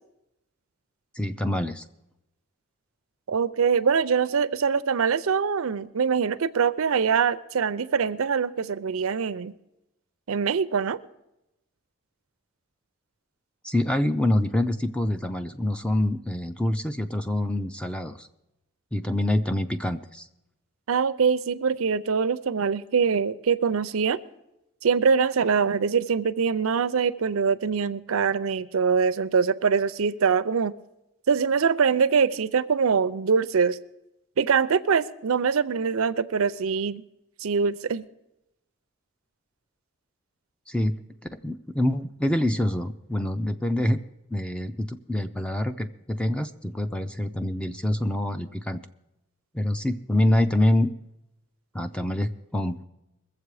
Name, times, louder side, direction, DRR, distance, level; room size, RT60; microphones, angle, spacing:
voice 1, 1.1-1.8 13.6-18.3 18.9-20.3 40.7-41.0 41.3-44.0 44.3-48.8 49.5-50.9 51.7-52.8, left 1 dB, 5° left, 9 dB, 0.4 m, -26 dB
voice 2, 3.3-9.5 10.3-11.0 20.9-24.2 24.8-30.7 31.3-33.8 34.4-37.0 37.4-38.1, right 6 dB, 80° right, 15 dB, 0.5 m, -23 dB
21.5 x 7.5 x 4.8 m, 0.89 s
head